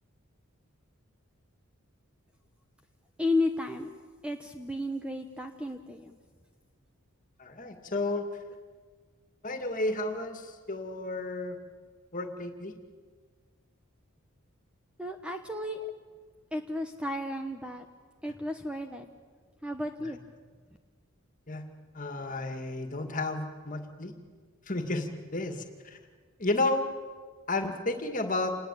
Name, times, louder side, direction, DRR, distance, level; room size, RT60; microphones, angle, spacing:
voice 1, 3.2-3.9 4.2-6.2 15.0-15.8 16.5-17.9 18.2-19.1 19.6-20.2, left 2 dB, 5° right, 5 dB, 1.0 m, -33 dB
voice 2, 7.4-8.2 9.4-11.6 12.1-12.8 20.0-20.1 21.5-21.7 21.9-24.2 24.7-26.0 26.4-26.8 27.5-28.5, left 2 dB, 35° left, 6 dB, 2.3 m, -32 dB
27.5 x 20.0 x 8.6 m, 1.5 s
head